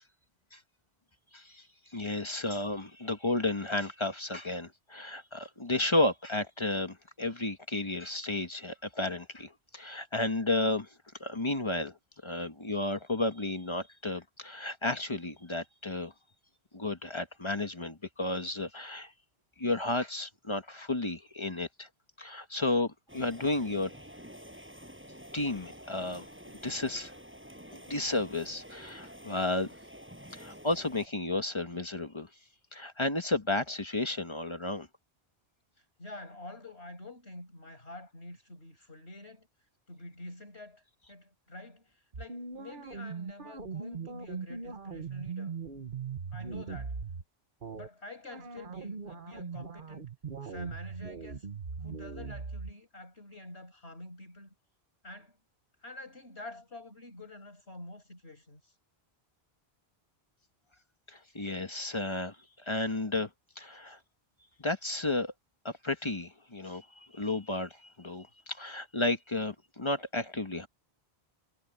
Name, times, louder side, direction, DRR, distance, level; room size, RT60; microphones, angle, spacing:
voice 1, 1.3-1.6 1.9-10.9 11.2-11.9 12.2-16.1 16.7-19.1 19.6-21.9 22.2-23.9 25.3-26.3 26.6-27.1 27.7-29.7 30.3-32.3 32.7-34.9 61.1-63.3 63.6-64.0 64.6-65.3 65.6-70.7, left 2 dB, 30° left, 1.2 m, -32 dB
sound 1, 23.1-31.1, equal, 10° right, 6.1 m, -49 dB
voice 2, 36.0-39.5 39.9-45.5 46.3-47.0 47.7-50.1 50.4-51.5 51.8-54.5 55.0-55.4 55.8-58.7, left 2 dB, 90° left, 7.0 m, -47 dB
sound 2, 42.1-47.2 47.6-47.9 48.3-52.7, right 5 dB, 55° right, 1.3 m, -40 dB
omnidirectional pair, 1.1 m